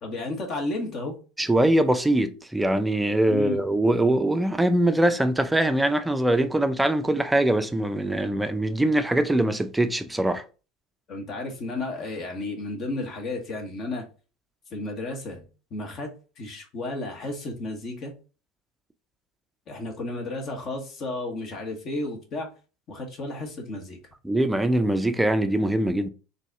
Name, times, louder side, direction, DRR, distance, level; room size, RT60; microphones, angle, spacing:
voice 1, 0.0-1.2 3.3-3.6 11.1-14.1 14.7-15.4 15.7-16.1 16.4-18.1 19.7-22.5 22.9-24.0, left 2 dB, 45° left, 1.2 m, -32 dB
voice 2, 1.4-10.4 24.2-26.1, right 1 dB, 10° right, 0.5 m, -22 dB
4.0 x 2.7 x 3.4 m
hypercardioid pair, 80°, 0 cm